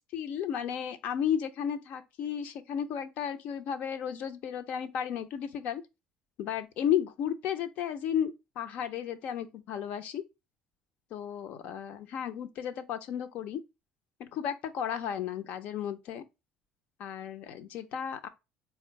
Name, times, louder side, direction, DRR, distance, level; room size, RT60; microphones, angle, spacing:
voice 1, 0.1-5.8 6.4-10.2 11.1-13.6 14.2-16.2 17.0-18.3, left 9 dB, 65° left, 0.8 m, -33 dB
4.4 x 2.4 x 4.1 m
supercardioid pair, 75°, 3 cm